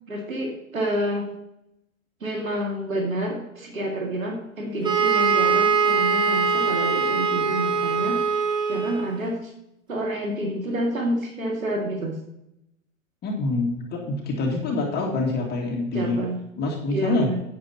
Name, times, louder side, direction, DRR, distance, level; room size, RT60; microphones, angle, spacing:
voice 1, 0.1-1.3 2.2-8.2 8.7-9.5 9.9-12.2 15.9-16.4 16.9-17.4, right 1 dB, 80° right, 1 dB, 2.3 m, -28 dB
sound 1, 4.8-9.2, right 5 dB, 10° right, 1.3 m, -22 dB
voice 2, 13.2-16.2 16.6-17.3, left 2 dB, 25° left, 0 dB, 2.2 m, -26 dB
12.0 x 9.5 x 2.9 m, 0.83 s
figure-of-eight pair, 105°, 40 cm